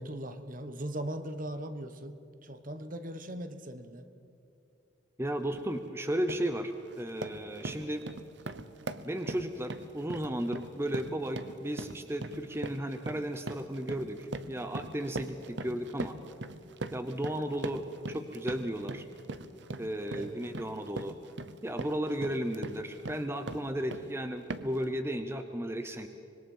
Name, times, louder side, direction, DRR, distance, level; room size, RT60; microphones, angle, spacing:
voice 1, 0.0-4.1 20.2-20.4, right 1 dB, 45° right, 9 dB, 1.2 m, -39 dB
voice 2, 5.2-8.0 9.0-16.2 16.9-19.0 19.8-21.2 21.6-26.1, right 1 dB, 15° right, 7 dB, 0.8 m, -34 dB
sound 1, 5.5-5.7 6.1-6.5 6.9-24.1 24.5-24.8, right 2 dB, 60° right, 0.9 m, -41 dB
25.5 x 21.0 x 5.6 m, 2.8 s
head